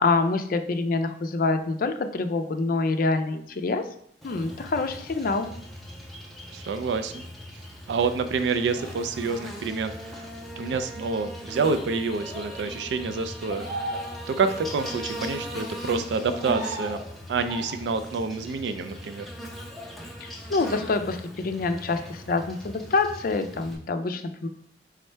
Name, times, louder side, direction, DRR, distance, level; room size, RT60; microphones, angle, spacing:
voice 1, 0.0-3.9 4.2-5.5 20.2-24.5, left 3 dB, 55° left, 7 dB, 0.4 m, -26 dB
Buzz, 4.2-23.7, equal, ahead, 0.7 m, -39 dB
voice 2, 6.5-7.2 7.9-10.3 10.6-13.9 14.3-17.0 17.3-19.3, right 4 dB, 75° right, 10 dB, 0.3 m, -28 dB
sound 1, 8.8-9.3 12.2-12.6 13.5-14.6 16.2-17.1 17.5-18.0 19.7-19.9, right 1 dB, 20° right, 1.7 m, -37 dB
4.3 x 3.6 x 3.3 m, 0.66 s
head